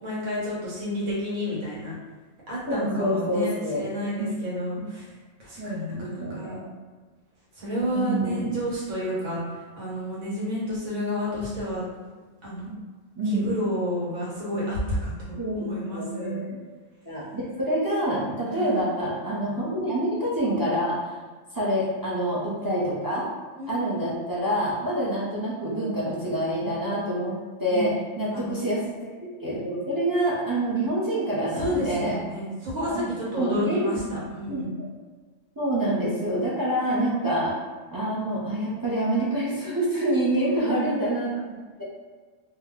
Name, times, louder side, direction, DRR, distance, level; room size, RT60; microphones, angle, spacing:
voice 1, 0.0-2.0 2.5-5.1 5.4-6.6 7.5-11.8 12.4-12.7 13.2-16.4 18.5-18.9 23.6-24.0 27.7-27.9 28.3-28.4 31.5-34.8 40.4-41.1, equal, 85° right, -6 dB, 1.5 m, -30 dB
voice 2, 2.7-3.9 4.2-4.6 5.6-6.7 7.9-8.6 12.7-12.8 13.2-13.5 15.4-16.6 17.0-21.0 21.5-23.3 23.7-29.1 29.4-32.2 32.8-33.1 33.4-34.2 34.5-34.6 35.6-37.5 37.9-41.8, right 1 dB, 35° right, -8 dB, 0.3 m, -27 dB
2.9 x 2.1 x 3.6 m, 1.4 s
omnidirectional pair, 1.4 m